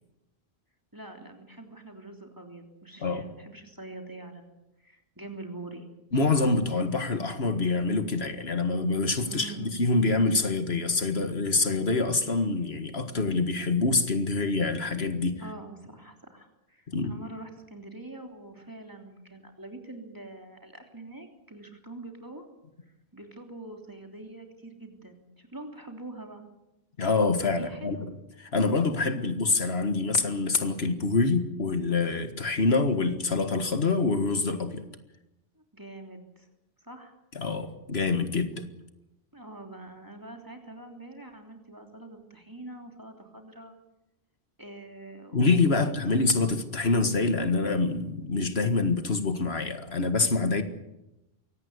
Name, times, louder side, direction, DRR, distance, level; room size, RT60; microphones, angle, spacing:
voice 1, 0.9-5.8 9.3-9.8 15.4-22.4 23.1-26.4 27.6-28.1 29.0-29.4 35.5-36.5 36.8-37.1 39.3-43.7 44.6-45.8 46.2-46.3, right 2 dB, 20° right, 3 dB, 3.3 m, -44 dB
voice 2, 6.1-15.4 16.9-17.1 27.0-28.1 28.5-34.8 37.4-38.6 45.3-50.6, left 3 dB, 75° left, 8 dB, 2.0 m, -26 dB
23.5 x 17.5 x 8.2 m, 0.92 s
omnidirectional pair, 1.1 m